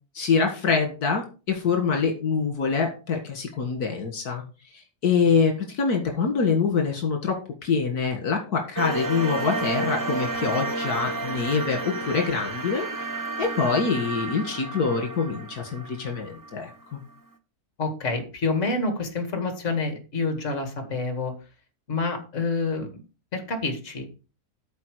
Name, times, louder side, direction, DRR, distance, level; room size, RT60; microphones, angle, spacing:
voice 1, 0.2-4.4 5.0-7.4 7.6-12.9 13.4-16.7, left 5 dB, 75° left, 3 dB, 2.2 m, -25 dB
sound 1, 8.8-16.7, right 2 dB, 15° right, 0.7 m, -31 dB
voice 2, 17.8-21.3 21.9-23.0 23.3-24.1, left 3 dB, 50° left, 5 dB, 2.4 m, -28 dB
13.0 x 4.8 x 4.9 m, 0.33 s
omnidirectional pair, 1.6 m